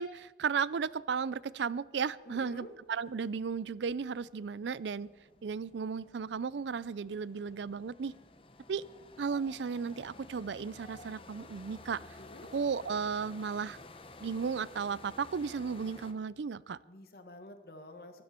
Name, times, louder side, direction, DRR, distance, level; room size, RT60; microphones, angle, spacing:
voice 1, 0.0-5.1 5.4-8.1 8.7-8.8 9.2-12.0 12.5-13.8 14.2-16.8, right 6 dB, 80° right, 20 dB, 0.4 m, -34 dB
sound 1, 1.9-2.0 2.3-16.1, left 2 dB, 30° left, 0.9 m, -54 dB
voice 2, 2.2-2.7 12.2-12.5 16.8-18.2, left 1 dB, 55° left, 7 dB, 1.5 m, -49 dB
24.0 x 13.0 x 4.4 m, 1.3 s
head